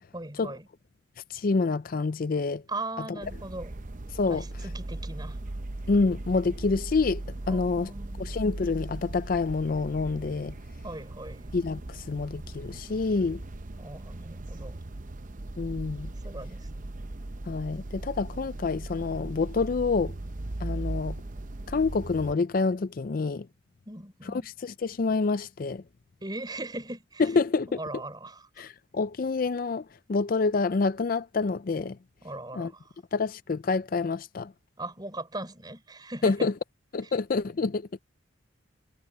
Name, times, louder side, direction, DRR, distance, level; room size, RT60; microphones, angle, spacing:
voice 1, 0.1-0.7 2.7-3.7 4.3-5.4 7.5-8.3 10.8-11.5 13.8-14.8 16.2-16.9 23.8-24.5 26.2-27.3 27.8-28.7 32.2-32.9 34.8-36.5 37.0-37.1, right 2 dB, 20° right, 4.6 m, -39 dB
voice 2, 1.3-2.6 4.1-4.4 5.9-7.2 7.5-7.9 8.2-10.5 11.5-13.4 15.6-16.1 17.5-20.1 20.6-21.2 21.7-23.5 24.3-25.8 27.2-27.8 28.6-32.0 32.5-32.7 33.1-34.5 36.2-36.5 36.9-37.9, left 4 dB, 45° left, 0.4 m, -27 dB
sound 1, 3.2-22.4, right 2 dB, 40° right, 0.7 m, -38 dB
head